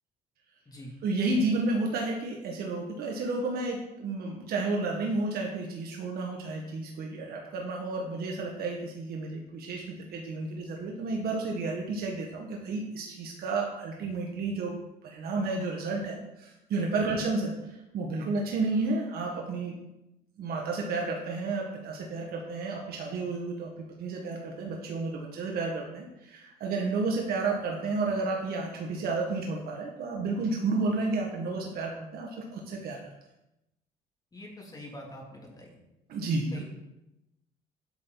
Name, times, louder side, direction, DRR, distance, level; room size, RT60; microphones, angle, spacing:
voice 1, 1.0-9.8 10.1-14.7 15.0-19.8 20.4-23.7 24.0-33.0 36.1-36.6, right 3 dB, 65° right, 0 dB, 1.8 m, -31 dB
voice 2, 34.3-35.8 36.5-36.6, left 1 dB, 20° left, -1 dB, 3.1 m, -44 dB
11.5 x 8.4 x 4.1 m, 0.92 s
cardioid pair, 110°, 17 cm